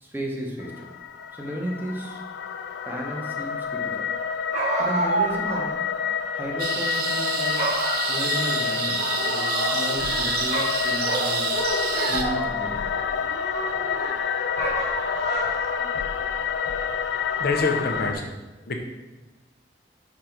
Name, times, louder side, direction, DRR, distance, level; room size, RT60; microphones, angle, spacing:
voice 1, 0.0-0.9 1.4-2.2 2.9-4.1 4.8-5.8 6.3-7.6 8.1-11.5 12.1-12.9, equal, 10° right, -1 dB, 1.0 m, -33 dB
sound 1, 0.6-18.1, left 6 dB, 75° left, 0.4 m, -28 dB
sound 2, 4.5-5.6 6.0-6.1 7.0-7.2 7.6-8.5 9.0-10.2 10.5-12.7 13.2-14.1 14.6-15.9, right 2 dB, 40° right, 1.2 m, -29 dB
sound 3, 6.6-12.2, right 4 dB, 60° right, 0.7 m, -28 dB
voice 2, 17.4-18.3 18.7-18.8, left 3 dB, 60° left, 3 dB, 0.8 m, -25 dB
6.3 x 4.0 x 4.4 m, 1.2 s
head